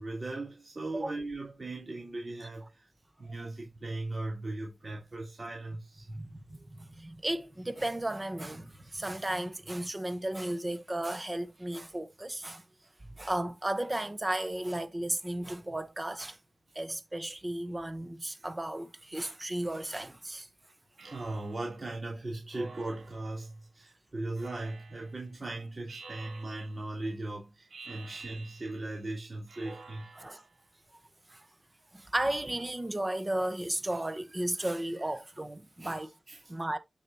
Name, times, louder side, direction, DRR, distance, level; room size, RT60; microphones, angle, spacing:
voice 1, 0.0-2.9 3.2-6.1 21.0-30.1 35.8-36.0 36.3-36.4, right 2 dB, 35° right, 3.4 m, -38 dB
voice 2, 6.1-12.6 13.1-16.4 16.7-20.5 30.2-30.4 31.3-31.5 31.9-36.1 36.5-36.8, right 1 dB, 20° right, 1.0 m, -34 dB
Speech synthesizer, 21.0-21.8 22.5-23.4 24.4-25.2 25.9-26.9 27.7-28.9 29.5-30.5, right 3 dB, 70° right, 3.2 m, -50 dB
8.4 x 6.6 x 2.9 m
wide cardioid pair, 125°, 0 cm